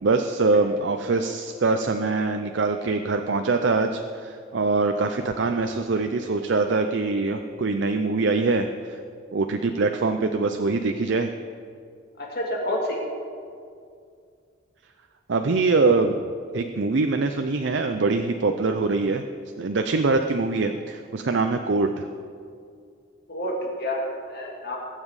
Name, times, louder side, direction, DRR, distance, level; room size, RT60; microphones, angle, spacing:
voice 1, 0.0-9.0 9.3-11.3 15.3-16.2 16.5-19.2 19.6-22.1, right 3 dB, 60° right, 6 dB, 0.5 m, -23 dB
voice 2, 12.2-13.0 23.3-24.8, left 1 dB, 55° left, -2 dB, 2.0 m, -29 dB
20.0 x 7.4 x 4.9 m, 2.3 s
head